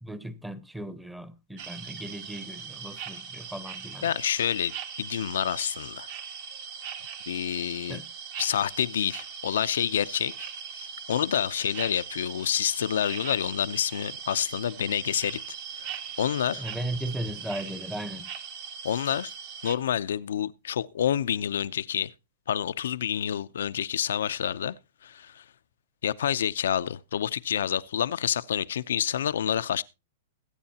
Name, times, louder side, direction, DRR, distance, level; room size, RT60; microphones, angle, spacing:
voice 1, 0.0-4.1 7.9-8.1 16.5-18.3, right 1 dB, 5° right, 0.8 m, -37 dB
sound 1, 1.6-19.8, right 7 dB, 50° right, 1.4 m, -40 dB
voice 2, 4.0-6.1 7.3-8.0 8.4-10.5 10.7-15.4 15.7-15.9 16.2-16.6 18.8-19.3 19.6-22.1 22.5-24.8 25.0-25.4 26.0-29.8, left 9 dB, 80° left, 0.6 m, -28 dB
21.0 x 8.8 x 2.8 m
hypercardioid pair, 145°, 0 cm